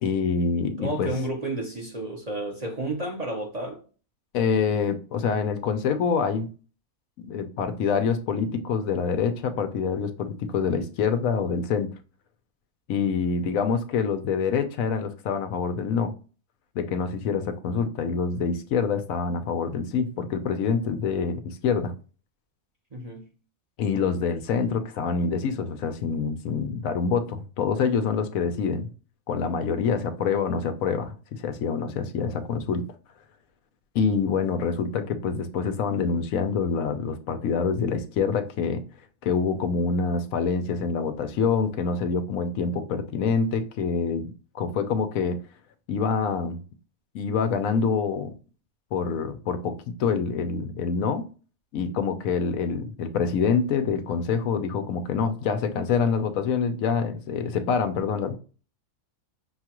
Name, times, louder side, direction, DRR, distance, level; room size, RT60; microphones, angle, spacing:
voice 1, 0.0-1.1 4.3-6.5 7.2-11.9 12.9-16.1 16.7-21.9 23.8-28.9 29.3-32.8 33.9-38.8 39.2-44.3 44.5-45.4 45.9-46.6 47.1-48.3 48.9-51.2 51.7-58.4, left 5 dB, 75° left, 1.0 m, -26 dB
voice 2, 0.8-3.8 22.9-23.3, right 1 dB, 35° right, 0.8 m, -31 dB
5.9 x 2.4 x 2.9 m
omnidirectional pair, 1.5 m